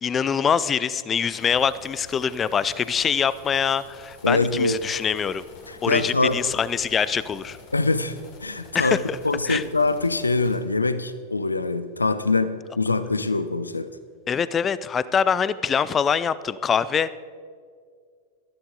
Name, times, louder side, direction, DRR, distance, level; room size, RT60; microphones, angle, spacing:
voice 1, 0.0-5.4 5.8-7.6 8.7-9.2 9.5-9.6 14.3-17.2, left 7 dB, 20° left, 17 dB, 0.5 m, -24 dB
sound 1, 1.3-10.6, left 4 dB, 45° left, 3.3 m, -48 dB
voice 2, 4.2-4.8 5.7-6.4 7.7-8.2 8.4-13.9, left 3 dB, 80° left, 13 dB, 0.6 m, -24 dB
18.0 x 13.5 x 3.9 m, 2.1 s
figure-of-eight pair, 90°, 0 cm